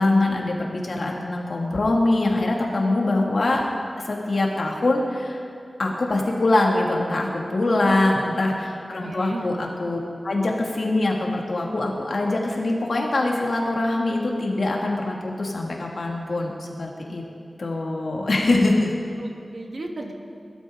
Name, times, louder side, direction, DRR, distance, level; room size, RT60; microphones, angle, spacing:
voice 1, 0.0-3.7 4.1-5.4 5.8-17.2 17.6-18.9, left 2 dB, 70° left, -1 dB, 2.3 m, -23 dB
voice 2, 7.7-8.7 9.0-9.5 19.2-20.1, right 2 dB, 60° right, 2 dB, 1.8 m, -35 dB
22.0 x 12.5 x 3.9 m, 2.5 s
wide cardioid pair, 95°, 0 cm